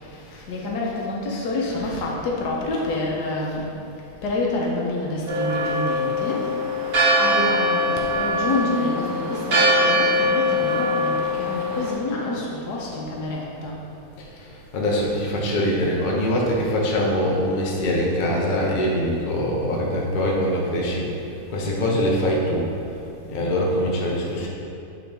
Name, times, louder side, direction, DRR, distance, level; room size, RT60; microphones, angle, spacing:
voice 1, 0.5-3.7 4.2-6.5 7.2-13.8, left 2 dB, 75° left, -2 dB, 1.4 m, -27 dB
voice 2, 1.8-2.1 14.7-21.0 21.5-22.7 23.3-24.5, equal, 40° left, -3 dB, 0.7 m, -23 dB
Church bell, 5.3-11.9, equal, 55° right, 1.6 m, -22 dB
8.2 x 3.8 x 3.4 m, 2.8 s
omnidirectional pair, 1.8 m